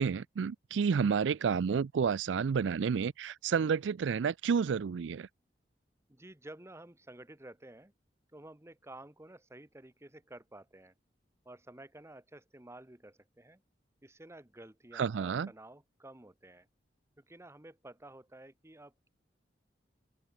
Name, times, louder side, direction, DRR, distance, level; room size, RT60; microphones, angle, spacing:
voice 1, 0.0-5.3 14.9-15.5, right 6 dB, 85° right, 0.4 m, -30 dB
voice 2, 6.1-7.9 8.3-10.9 11.4-13.6 14.0-16.7 17.2-19.1, right 1 dB, 15° right, 1.2 m, -52 dB
open air
head